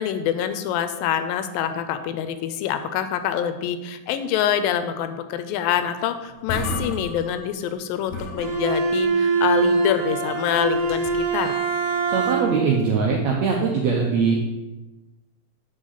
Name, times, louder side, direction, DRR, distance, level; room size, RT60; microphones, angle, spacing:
voice 1, 0.0-11.5, left 9 dB, 85° left, 10 dB, 2.3 m, -26 dB
sound 1, 6.0-6.1 6.3-7.8 8.1-9.1 10.7-11.3, left 2 dB, 65° left, 2.1 m, -33 dB
Bowed string instrument, 8.4-12.7, right 4 dB, 70° right, 1.4 m, -23 dB
voice 2, 12.1-14.4, right 5 dB, 85° right, 0 dB, 1.5 m, -21 dB
6.3 x 5.3 x 5.6 m, 1.1 s
omnidirectional pair, 4.1 m